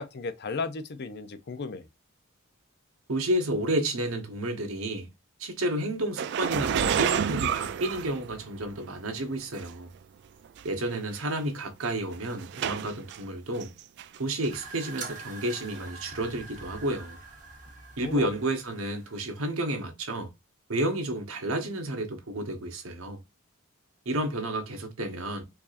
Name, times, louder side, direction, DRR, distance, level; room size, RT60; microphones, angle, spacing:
voice 1, 0.0-1.9 18.0-18.3, left 4 dB, 50° left, 0.5 m, -34 dB
voice 2, 3.1-5.1 5.4-9.9 10.6-13.7 14.2-17.2 18.0-20.3 20.7-23.2 24.0-25.4, right 1 dB, 80° right, 1.1 m, -31 dB
sound 1, 6.2-8.8 9.6-9.7 10.6-10.7 10.9-11.2 11.8-13.2 13.6-14.2 14.4-14.5 15.8-15.9, right 8 dB, 55° right, 0.3 m, -29 dB
sound 2, 14.5-19.6, right 4 dB, 40° right, 1.5 m, -44 dB
4.6 x 2.7 x 2.4 m
head